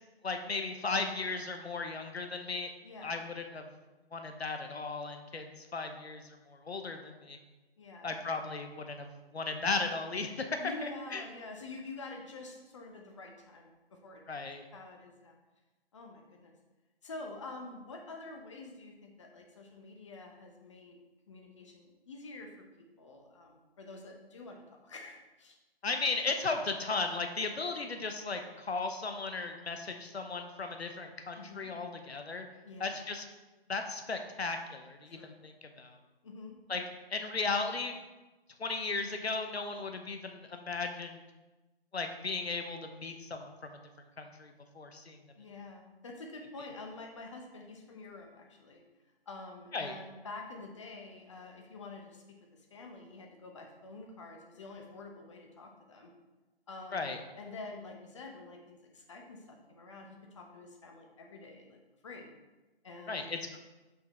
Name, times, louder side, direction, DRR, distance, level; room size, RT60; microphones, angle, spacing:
voice 1, 0.2-2.7 3.0-3.7 4.1-7.4 8.0-9.1 9.3-10.6 11.1-11.2 14.3-14.6 25.8-32.5 32.8-33.2 33.7-36.0 36.7-36.8 37.1-37.9 38.6-41.2 41.9-43.8 44.2-45.2 49.7-50.0 56.9-57.2 63.1-63.6, left 3 dB, 85° left, 6 dB, 1.0 m, -36 dB
voice 2, 2.8-3.2 7.8-8.1 10.6-13.7 14.0-14.2 14.7-15.4 15.9-16.5 17.0-21.0 21.3-22.6 23.0-25.6 31.3-31.7 32.6-32.9 35.1-35.3 36.2-36.6 45.3-48.8 49.3-52.2 52.5-56.1 56.7-57.1 57.4-62.3 62.8-63.3, left 3 dB, 30° left, 2 dB, 0.9 m, -47 dB
6.1 x 5.8 x 4.3 m, 1.1 s
figure-of-eight pair, 155°, 31 cm